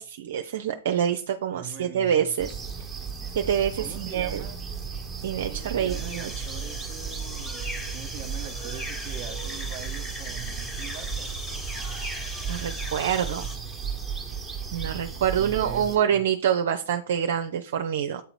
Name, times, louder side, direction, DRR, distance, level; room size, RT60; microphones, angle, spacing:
voice 1, 0.0-2.6 3.3-4.4 5.2-6.4 12.5-13.4 14.7-18.2, right 9 dB, 55° right, 0.6 m, -26 dB
voice 2, 1.5-2.3 3.8-4.6 5.5-11.4 15.4-16.2, right 8 dB, 40° right, 1.2 m, -42 dB
sound 1, 2.4-16.0, right 6 dB, 5° right, 1.3 m, -35 dB
sound 2, 5.9-13.6, right 1 dB, 10° left, 1.5 m, -37 dB
8.2 x 3.8 x 4.7 m
figure-of-eight pair, 105°, 0 cm